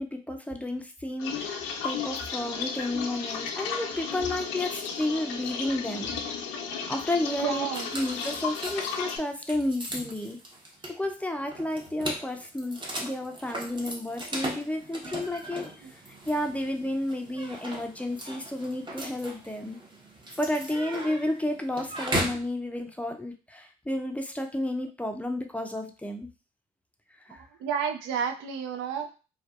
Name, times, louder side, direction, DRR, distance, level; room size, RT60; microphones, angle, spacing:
voice 1, 0.0-6.1 6.9-7.7 7.9-10.4 10.9-15.7 16.3-19.8 20.4-26.3 27.3-27.4, left 1 dB, 5° left, 4 dB, 0.4 m, -31 dB
sound 1, 1.2-9.2, left 6 dB, 85° left, 0.4 m, -34 dB
voice 2, 7.4-7.9 15.8-15.9 27.6-29.1, right 7 dB, 75° right, 5 dB, 0.4 m, -31 dB
sound 2, 7.7-22.5, right 1 dB, 25° right, 0.8 m, -37 dB
2.5 x 2.2 x 2.3 m, 0.33 s
hypercardioid pair, 55°, 19 cm